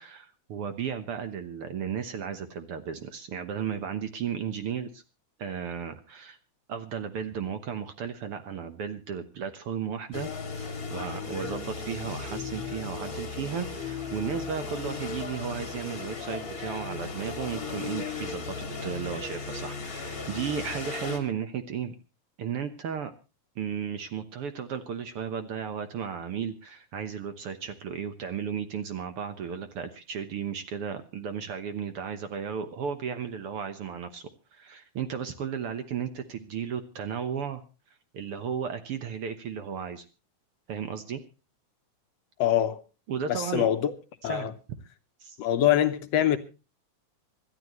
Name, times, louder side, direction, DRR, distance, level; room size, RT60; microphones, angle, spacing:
voice 1, 0.0-5.0 5.4-6.4 6.7-10.3 10.6-22.0 22.4-23.1 23.6-37.6 38.1-40.1 40.7-41.2 43.1-43.7 44.2-44.5 45.2-45.4, right 7 dB, 60° right, 1.7 m, -34 dB
sound 1, 10.1-21.2, left 5 dB, 30° left, 2.7 m, -36 dB
voice 2, 42.4-42.8 43.3-43.9 44.2-44.5 45.4-46.4, left 11 dB, 70° left, 1.9 m, -24 dB
26.0 x 12.0 x 3.1 m
omnidirectional pair, 3.4 m